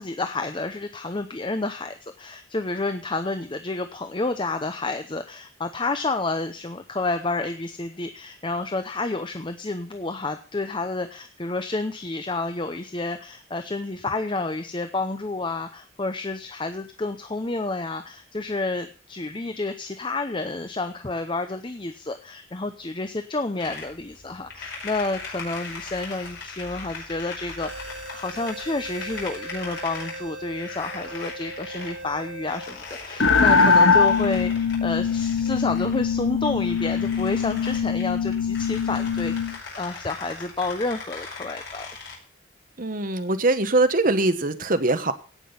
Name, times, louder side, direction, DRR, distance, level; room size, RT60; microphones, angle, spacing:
voice 1, 0.0-41.9, left 2 dB, 25° left, 8 dB, 0.7 m, -30 dB
sound 1, 23.6-42.2, left 4 dB, 65° left, 5.3 m, -40 dB
sound 2, 27.6-36.8 37.4-37.5 38.0-38.2, right 2 dB, 65° right, 2.8 m, -41 dB
sound 3, 33.2-39.6, left 5 dB, 85° left, 1.4 m, -22 dB
voice 2, 42.8-45.1, right 2 dB, 45° right, 9 dB, 1.2 m, -22 dB
17.0 x 6.2 x 6.9 m, 0.39 s
head